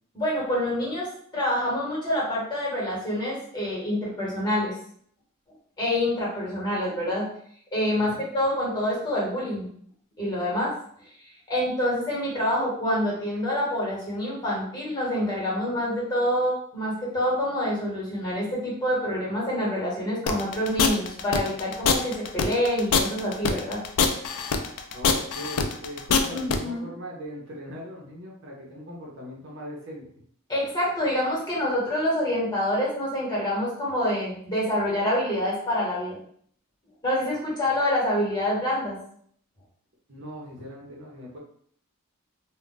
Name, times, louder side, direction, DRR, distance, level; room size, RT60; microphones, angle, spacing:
voice 1, 0.1-4.7 5.8-7.2 7.7-9.7 10.2-10.7 11.5-23.8 26.3-26.9 30.5-36.2 37.0-39.0, left 1 dB, 20° left, -5 dB, 1.2 m, -26 dB
sound 1, 20.3-26.6, left 6 dB, 85° left, 0.4 m, -23 dB
voice 2, 24.9-30.1 40.1-41.4, equal, 55° right, -3 dB, 0.8 m, -40 dB
2.4 x 2.2 x 3.9 m, 0.62 s
head